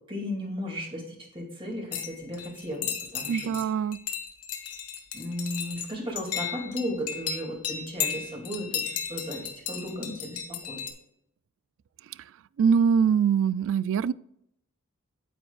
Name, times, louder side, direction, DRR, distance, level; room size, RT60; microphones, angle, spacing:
voice 1, 0.1-1.0 1.3-3.5 5.1-8.8 9.1-10.4 10.7-10.8, equal, 25° right, 2.4 m, -35 dB
sound 1, 1.9-3.6 3.9-10.9, left 8 dB, 90° left, 1.3 m, -34 dB
voice 2, 3.3-4.0 12.6-14.1, right 7 dB, 60° right, 0.3 m, -23 dB
9.0 x 8.9 x 2.4 m
head